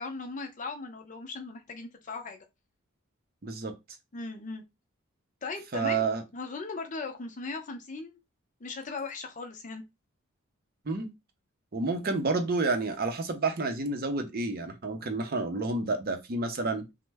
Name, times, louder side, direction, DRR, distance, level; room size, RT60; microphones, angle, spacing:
voice 1, 0.0-2.4 4.1-4.6 5.4-6.0 6.3-8.2 8.6-9.8, left 3 dB, 35° left, 0.5 m, -38 dB
voice 2, 3.4-3.7 5.7-6.2 10.9-11.1 11.7-16.8, right 3 dB, 45° right, 0.6 m, -29 dB
3.1 x 2.1 x 3.3 m
head